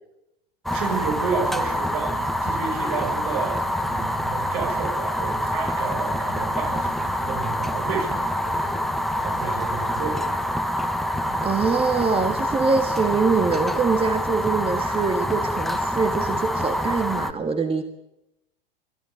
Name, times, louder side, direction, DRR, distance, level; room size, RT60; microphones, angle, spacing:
Fire, 0.7-17.3, equal, ahead, 1.3 m, -26 dB
voice 1, 0.7-8.8 9.1-10.3, right 6 dB, 60° right, 4 dB, 6.6 m, -31 dB
voice 2, 11.4-17.8, right 4 dB, 20° right, 8 dB, 1.8 m, -23 dB
24.0 x 13.5 x 9.7 m, 0.88 s
hypercardioid pair, 90°, 29 cm